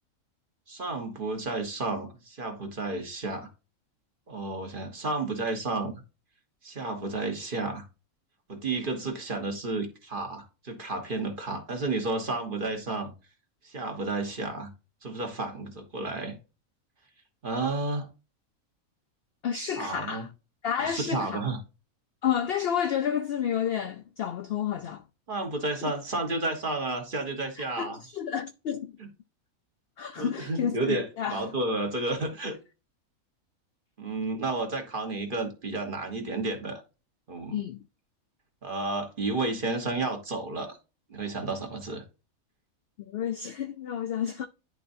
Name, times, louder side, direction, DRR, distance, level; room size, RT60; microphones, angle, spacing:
voice 1, 0.7-3.5 4.3-6.0 6.6-7.9 8.5-13.1 13.6-14.7 15.0-16.4 17.4-18.1 19.8-20.3 20.8-21.6 25.3-28.0 29.0-29.1 30.2-32.6 34.0-36.8 37.3-37.6 38.6-40.8 41.1-42.0, right 2 dB, 40° right, 1.3 m, -31 dB
voice 2, 19.4-20.3 20.6-21.4 22.2-25.0 27.8-28.9 30.0-31.4 37.5-37.8 43.0-44.5, left 8 dB, 70° left, 0.6 m, -30 dB
10.5 x 3.9 x 2.6 m
omnidirectional pair, 1.5 m